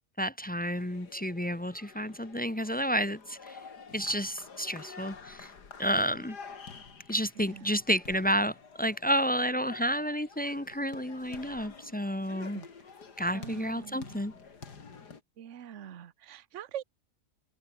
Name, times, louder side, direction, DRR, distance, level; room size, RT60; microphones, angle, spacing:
voice 1, 0.2-3.6 3.9-5.5 5.8-6.4 7.1-12.6 13.2-14.3, equal, 10° left, 0.5 m, -30 dB
sound 1, 0.7-15.2, left 5 dB, 80° left, 2.9 m, -49 dB
voice 2, 13.3-14.3 15.4-16.8, right 10 dB, 50° right, 1.2 m, -43 dB
omnidirectional pair, 1.7 m